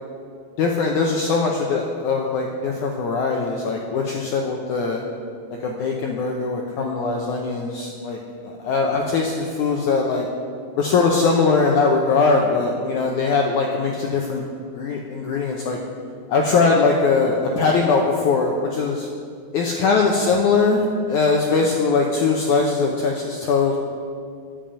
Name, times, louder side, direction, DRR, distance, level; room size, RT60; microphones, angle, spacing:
voice 1, 0.6-5.0 5.6-10.3 10.8-14.4 14.7-15.8 16.3-19.1 19.5-23.8, left 4 dB, 90° left, 0 dB, 1.7 m, -21 dB
10.5 x 7.2 x 8.9 m, 2.2 s
omnidirectional pair, 4.6 m